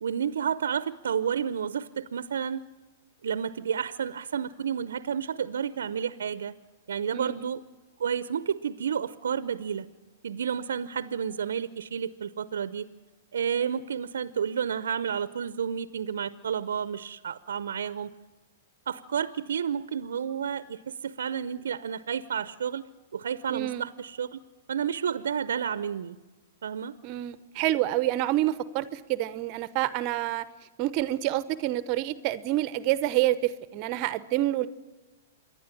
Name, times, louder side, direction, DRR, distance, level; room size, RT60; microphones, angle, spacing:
voice 1, 0.0-2.6 3.2-6.5 6.9-7.6 8.0-9.9 10.2-12.9 13.3-18.1 18.9-22.8 23.1-24.4 24.7-26.2 26.6-27.0, right 7 dB, 75° right, 15 dB, 0.7 m, -31 dB
voice 2, 7.1-7.5 23.5-23.9 27.0-30.4 30.8-34.7, right 15 dB, 45° right, 15 dB, 0.8 m, -28 dB
28.0 x 11.0 x 10.0 m, 1.2 s
hypercardioid pair, 115°, 0 cm